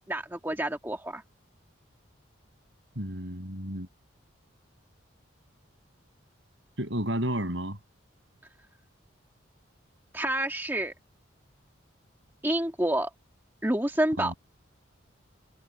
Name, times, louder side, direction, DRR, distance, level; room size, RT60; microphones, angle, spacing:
voice 1, 0.1-1.2 10.1-10.9 12.4-13.1 13.6-14.3, right 1 dB, 10° right, 1.7 m, -28 dB
voice 2, 3.0-3.9 6.8-7.8 14.2-14.3, right 1 dB, 65° right, 7.5 m, -31 dB
head